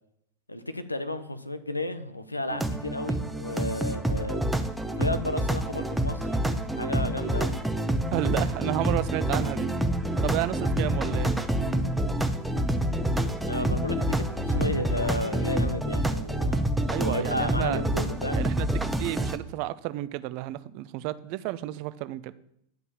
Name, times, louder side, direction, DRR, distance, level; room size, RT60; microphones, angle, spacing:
voice 1, 0.5-4.4 5.0-6.4 6.7-7.5 13.5-18.4, left 1 dB, 85° left, 11 dB, 0.9 m, -33 dB
sound 1, 2.5-19.4, right 1 dB, 5° right, 0.8 m, -27 dB
voice 2, 8.1-9.7 10.2-11.3 16.9-17.8 18.3-22.3, right 16 dB, 45° right, 15 dB, 0.5 m, -31 dB
10.5 x 5.4 x 7.3 m, 0.74 s
figure-of-eight pair, 90°, 0 cm